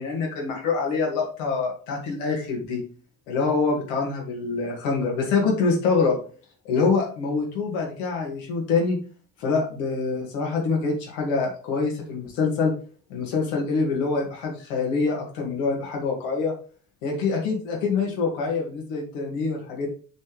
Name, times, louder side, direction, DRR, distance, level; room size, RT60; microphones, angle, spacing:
voice 1, 0.0-2.8 3.3-6.2 6.7-9.0 9.4-12.7 13.1-16.5 17.0-19.9, left 4 dB, 70° left, 0 dB, 2.2 m, -25 dB
7.5 x 4.3 x 3.3 m, 0.40 s
figure-of-eight pair, 50°, 41 cm